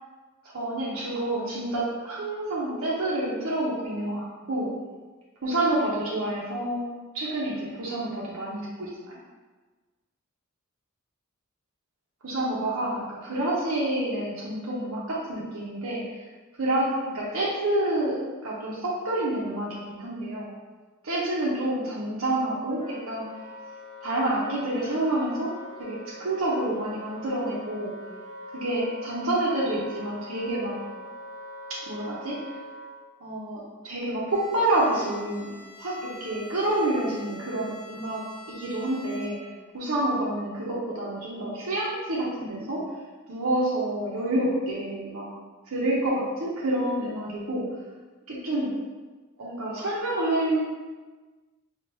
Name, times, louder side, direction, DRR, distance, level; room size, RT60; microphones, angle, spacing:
voice 1, 0.4-4.7 5.4-9.2 12.2-16.3 16.6-20.5 21.0-23.3 24.0-25.5 25.8-27.9 28.5-30.7 31.7-32.4 33.2-35.5 35.8-39.4 39.7-42.8 43.3-45.3 45.7-47.7 48.3-48.7 49.4-50.6, right 1 dB, 70° right, -6 dB, 0.8 m, -28 dB
Wind instrument woodwind instrument, 22.7-33.0, left 1 dB, 65° left, 0.7 m, -43 dB
Bowed string instrument, 34.3-39.7, equal, 25° left, 0.9 m, -46 dB
4.6 x 2.4 x 2.9 m, 1.3 s
head